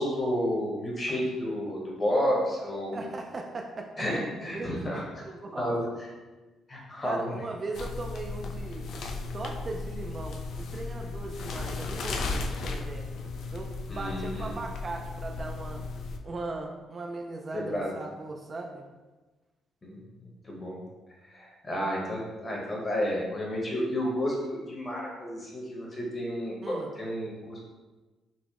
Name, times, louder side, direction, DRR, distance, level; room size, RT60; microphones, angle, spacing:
voice 1, 0.0-3.0 4.0-5.0 5.6-6.1 6.7-7.4 13.9-14.5 17.5-17.9 19.8-20.8 21.3-27.6, equal, 30° left, -3 dB, 1.0 m, -31 dB
voice 2, 2.9-3.9 4.5-5.8 7.0-8.9 9.3-13.1 13.5-15.8 16.2-18.8 26.6-26.9, right 3 dB, 35° right, 2 dB, 0.3 m, -38 dB
sound 1, 7.7-16.2, left 3 dB, 65° left, 0.3 m, -35 dB
4.1 x 2.0 x 2.9 m, 1.2 s
cardioid pair, 90°, 0 cm